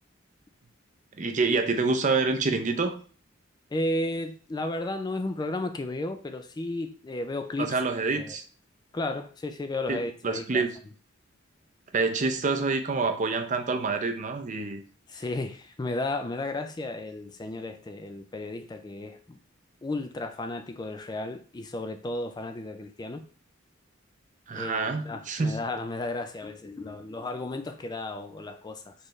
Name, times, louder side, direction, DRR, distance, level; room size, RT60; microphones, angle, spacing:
voice 1, 1.2-3.0 7.6-8.4 9.9-10.7 11.9-14.8 24.5-25.6, right 4 dB, 40° right, 0.5 m, -27 dB
voice 2, 3.7-7.8 8.2-8.4 8.9-10.7 15.1-19.4 19.8-23.2 24.5-28.9, left 2 dB, 20° left, 0.3 m, -33 dB
4.4 x 3.3 x 3.1 m
head